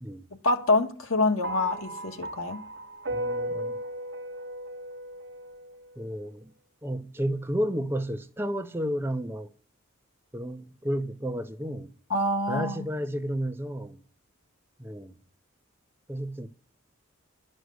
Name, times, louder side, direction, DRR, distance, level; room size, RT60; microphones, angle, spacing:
voice 1, 0.4-2.6 12.1-12.8, left 2 dB, 80° left, 1.8 m, -26 dB
sound 1, 1.4-5.9, right 1 dB, 55° right, 0.9 m, -36 dB
voice 2, 3.1-3.8 6.0-6.5 6.8-9.5 10.3-11.9 12.5-14.0 14.8-15.2 16.1-16.5, equal, 10° right, 0.7 m, -32 dB
12.5 x 6.4 x 8.0 m
head